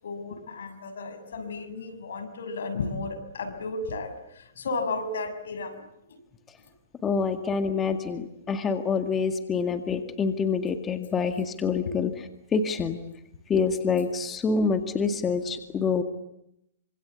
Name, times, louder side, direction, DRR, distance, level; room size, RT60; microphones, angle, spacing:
voice 1, 0.0-5.8 6.1-6.2 11.3-11.4 11.8-11.9, left 3 dB, 80° left, 7 dB, 6.9 m, -34 dB
voice 2, 7.0-12.1 12.5-13.0 13.5-16.0, left 5 dB, 15° left, 8 dB, 2.0 m, -26 dB
26.5 x 26.0 x 8.4 m, 0.78 s
hypercardioid pair, 150°, 0 cm